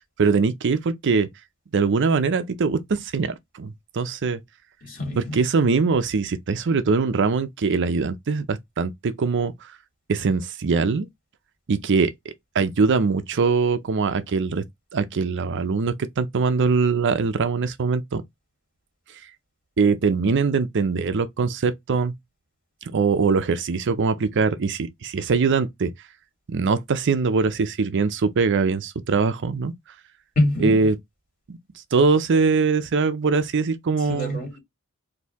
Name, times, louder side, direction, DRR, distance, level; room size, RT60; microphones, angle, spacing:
voice 1, 0.2-1.3 1.7-4.4 5.2-9.7 10.1-11.1 11.7-14.6 14.9-18.2 19.8-22.1 22.8-25.9 26.5-29.7 30.6-31.0 31.5-31.6 31.9-34.4, right 4 dB, 55° right, 0.5 m, -22 dB
voice 2, 4.8-5.4 30.4-30.8 34.1-34.6, left 1 dB, 40° left, 2.5 m, -25 dB
4.3 x 2.7 x 3.4 m
head